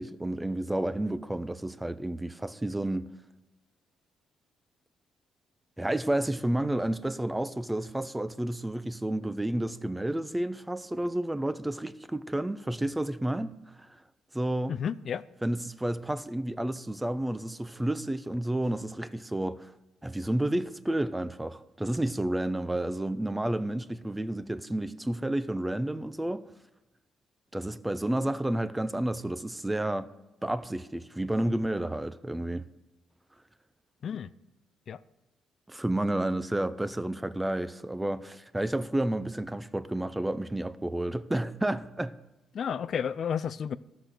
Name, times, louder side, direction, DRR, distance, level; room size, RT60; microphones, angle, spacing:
voice 1, 0.0-3.1 5.8-14.0 14.3-14.8 15.4-19.7 20.0-26.4 27.5-30.1 30.4-32.7 35.7-42.1, right 1 dB, 10° right, 0.5 m, -31 dB
voice 2, 14.7-15.2 34.0-34.3 34.9-35.0 42.5-43.8, left 7 dB, 55° left, 0.4 m, -31 dB
13.0 x 6.0 x 6.6 m
cardioid pair, 90°, 0 cm